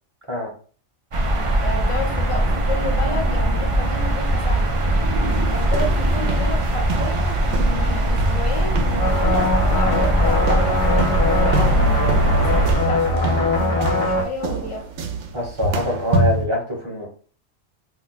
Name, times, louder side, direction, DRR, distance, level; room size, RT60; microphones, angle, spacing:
sound 1, 1.1-12.8, right 1 dB, 45° right, 0.4 m, -20 dB
voice 1, 1.6-4.7 5.5-14.9, left 2 dB, 35° left, 0.6 m, -31 dB
sound 2, 5.3-16.5, right 2 dB, 85° right, 0.9 m, -28 dB
sound 3, 9.0-14.2, left 1 dB, 75° left, 1.1 m, -21 dB
voice 2, 15.3-17.1, equal, 30° right, 0.9 m, -24 dB
2.6 x 2.1 x 3.9 m
omnidirectional pair, 1.2 m